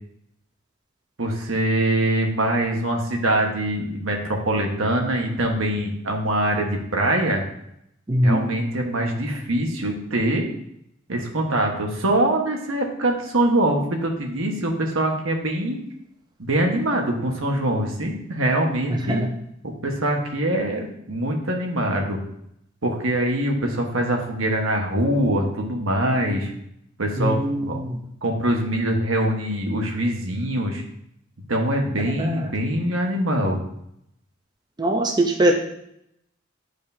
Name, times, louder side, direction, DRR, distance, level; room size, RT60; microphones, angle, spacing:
voice 1, 1.2-7.4 8.2-10.5 11.1-15.8 16.4-19.2 19.8-22.2 22.8-26.5 27.0-27.8 28.2-30.8 31.5-33.6, right 1 dB, 85° right, 1 dB, 1.4 m, -23 dB
voice 2, 8.1-8.5 19.1-19.3 27.2-28.0 32.2-32.3 34.8-35.5, right 1 dB, 20° right, 2 dB, 0.6 m, -21 dB
10.5 x 4.9 x 2.8 m, 0.76 s
head